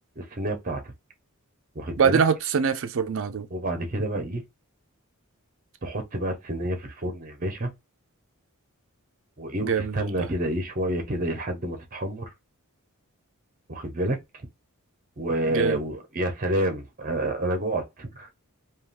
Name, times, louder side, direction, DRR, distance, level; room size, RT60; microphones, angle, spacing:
voice 1, 0.2-0.9 1.7-2.2 3.5-4.4 5.8-7.7 9.4-12.3 13.7-14.2 15.2-18.3, right 1 dB, 40° right, 0.8 m, -29 dB
voice 2, 2.0-3.5 9.6-10.3 15.5-15.8, right 6 dB, 60° right, 0.5 m, -24 dB
3.5 x 2.4 x 2.4 m
head